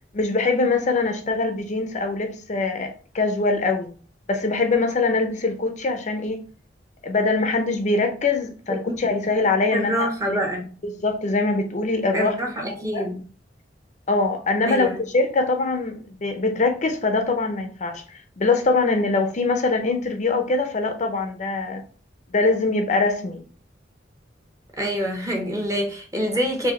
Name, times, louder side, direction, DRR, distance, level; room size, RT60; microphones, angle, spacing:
voice 1, 0.1-3.9 4.3-6.4 7.0-10.4 10.8-12.3 12.9-13.0 14.1-21.8 22.3-23.4, left 3 dB, 40° left, 0.6 m, -23 dB
voice 2, 9.7-10.7 12.1-13.2 14.7-15.0 24.8-26.7, equal, 20° right, 0.9 m, -26 dB
4.8 x 2.7 x 3.1 m
head